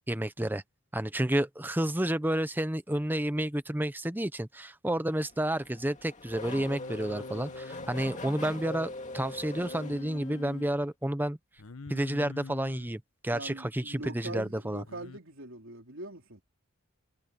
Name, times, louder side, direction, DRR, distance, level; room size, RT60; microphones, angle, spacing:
voice 1, 0.1-0.6 0.9-11.4 11.9-14.8, right 1 dB, 10° right, 0.8 m, -30 dB
Race car auto racing / Accelerating revving vroom, 5.1-10.7, left 2 dB, 35° left, 2.4 m, -42 dB
Singing, 6.4-8.9 9.5-10.7 11.6-12.9 14.9-15.2, left 4 dB, 75° left, 1.0 m, -46 dB
voice 2, 13.3-16.4, right 2 dB, 65° right, 4.0 m, -42 dB
head